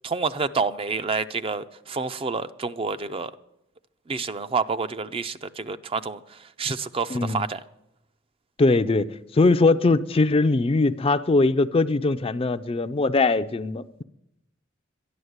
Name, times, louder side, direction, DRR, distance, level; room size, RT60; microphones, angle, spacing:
voice 1, 0.0-3.3 4.1-7.6, right 4 dB, 30° right, 0.4 m, -28 dB
voice 2, 7.1-7.4 8.6-14.0, left 3 dB, 30° left, 0.4 m, -21 dB
11.0 x 11.0 x 7.9 m
head